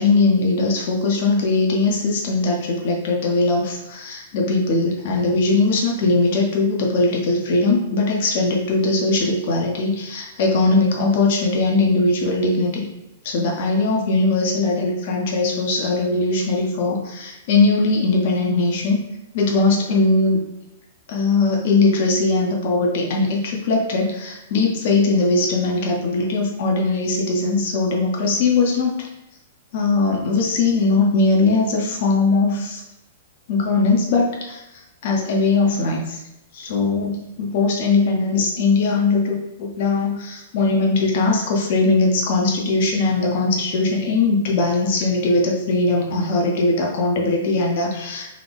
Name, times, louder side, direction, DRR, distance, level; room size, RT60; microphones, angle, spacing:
voice 1, 0.0-12.9 13.2-19.0 19.3-20.4 21.1-29.1 29.7-32.8 33.5-36.2 36.5-48.3, left 3 dB, 50° left, -1 dB, 0.8 m, -20 dB
3.8 x 3.3 x 3.5 m, 0.91 s
figure-of-eight pair, 105°, 0 cm